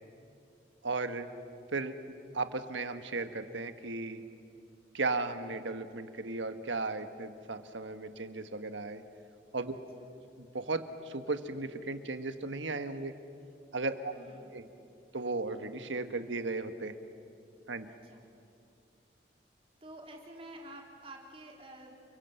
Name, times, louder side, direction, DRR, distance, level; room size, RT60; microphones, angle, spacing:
voice 1, 0.8-1.3 1.7-1.9 2.3-4.2 4.9-9.0 9.5-9.7 10.4-13.1 13.7-14.1 14.5-14.6 15.1-16.9 17.7-17.9, right 3 dB, 85° right, 9 dB, 1.5 m, -35 dB
voice 2, 14.1-14.5 17.8-18.2 19.8-22.0, right 1 dB, 30° right, 0 dB, 3.7 m, -49 dB
30.0 x 23.0 x 7.9 m, 2.5 s
head